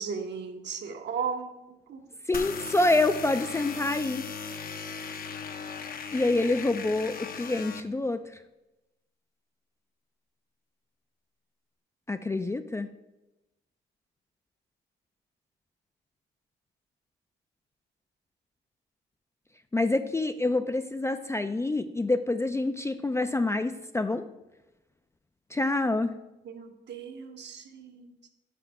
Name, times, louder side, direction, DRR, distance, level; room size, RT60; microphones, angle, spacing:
voice 1, 0.0-2.1 26.4-28.1, right 6 dB, 60° right, 5 dB, 1.1 m, -36 dB
sound 1, 2.3-7.8, left 6 dB, 50° left, 0.7 m, -38 dB
voice 2, 2.3-4.2 6.1-8.2 12.1-12.9 19.7-24.2 25.5-26.1, left 2 dB, 15° left, 9 dB, 0.4 m, -27 dB
6.0 x 5.1 x 5.8 m, 0.98 s
cardioid pair, 90°, 20 cm